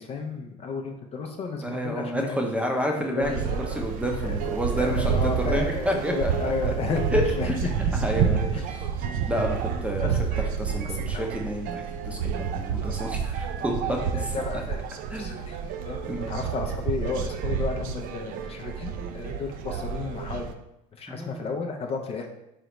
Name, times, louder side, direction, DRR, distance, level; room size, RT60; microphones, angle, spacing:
voice 1, 0.0-2.4 3.2-3.8 4.2-4.4 4.7-7.7 8.5-8.6 10.0-10.5 10.9-11.3 13.6-13.7 14.1-15.6 15.9-20.5 21.0-22.3, left 4 dB, 35° left, 3 dB, 0.5 m, -33 dB
voice 2, 1.6-6.7 7.1-8.9 9.3-10.1 10.6-14.3 15.1-15.4 16.1-16.4 21.1-21.4, equal, 5° right, 2 dB, 0.6 m, -30 dB
sound 1, 3.2-20.5, right 7 dB, 55° right, 0.4 m, -29 dB
3.8 x 3.2 x 3.0 m, 0.88 s
supercardioid pair, 95°, 17 cm